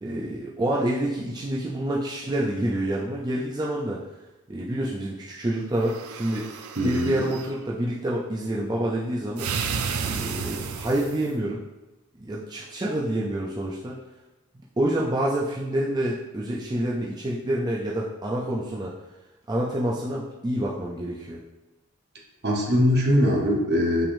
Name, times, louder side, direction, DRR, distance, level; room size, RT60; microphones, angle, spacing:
voice 1, 0.0-4.0 4.5-6.5 6.8-9.5 10.0-11.6 12.2-14.0 14.8-19.0 19.5-21.4, right 1 dB, 20° right, -4 dB, 0.4 m, -27 dB
sound 1, 5.8-7.5 9.4-11.3, right 6 dB, 80° right, 0.4 m, -32 dB
voice 2, 6.8-7.2 22.4-24.1, equal, 50° right, -1 dB, 0.9 m, -21 dB
5.8 x 3.4 x 2.6 m, 1.0 s
head